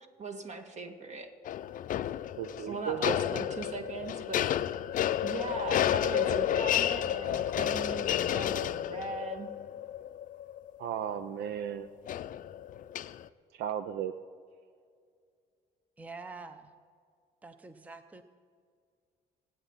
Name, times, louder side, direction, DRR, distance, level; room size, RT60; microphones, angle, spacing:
voice 1, 0.2-1.3 2.6-4.5 5.2-9.5, right 3 dB, 45° right, 5 dB, 1.8 m, -39 dB
sound 1, 1.5-11.2 12.1-13.2, left 11 dB, 50° left, 0.5 m, -31 dB
voice 2, 2.4-3.2 10.8-11.9 13.5-14.2, right 9 dB, 75° right, 12 dB, 0.5 m, -35 dB
voice 3, 16.0-16.7 17.4-18.2, right 3 dB, 10° right, 9 dB, 0.6 m, -46 dB
25.0 x 9.3 x 4.1 m, 2.2 s
cardioid pair, 110°, 17 cm